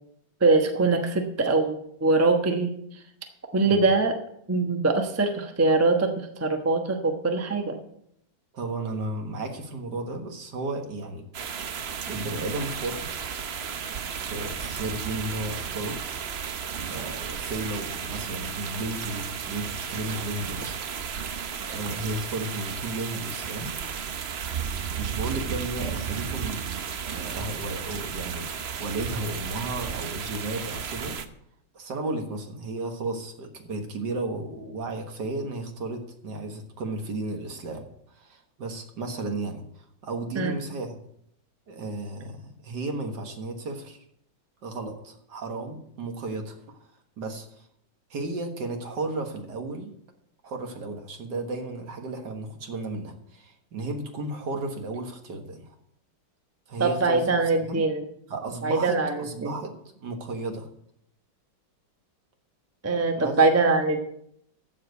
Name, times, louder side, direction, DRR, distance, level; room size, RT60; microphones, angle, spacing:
voice 1, 0.4-3.0 3.5-4.1 4.5-7.8 40.3-40.6 56.8-58.0 58.6-59.5 62.8-64.0, right 3 dB, 10° right, 4 dB, 0.7 m, -23 dB
voice 2, 8.5-11.3 12.1-13.2 14.2-16.1 16.8-20.8 21.6-23.7 24.8-31.2 31.7-40.9 41.7-44.0 44.6-46.8 47.2-47.7 48.1-49.9 50.4-55.8 56.7-57.2 57.6-57.8 58.3-60.7 63.2-63.4, right 2 dB, 55° right, 4 dB, 2.0 m, -34 dB
sound 1, 11.3-31.2, right 7 dB, 90° right, 0.5 m, -34 dB
14.5 x 5.0 x 8.1 m, 0.72 s
omnidirectional pair, 2.2 m